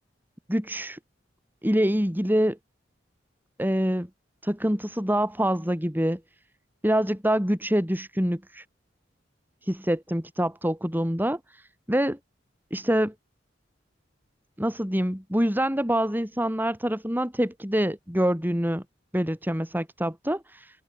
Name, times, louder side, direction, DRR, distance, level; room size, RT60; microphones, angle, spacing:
voice 1, 0.5-1.0 1.6-2.6 3.6-4.1 4.4-6.2 6.8-8.6 9.6-11.6 11.9-12.2 12.7-13.1 14.6-18.8 19.1-20.8, equal, 10° right, 7.5 m, -25 dB
head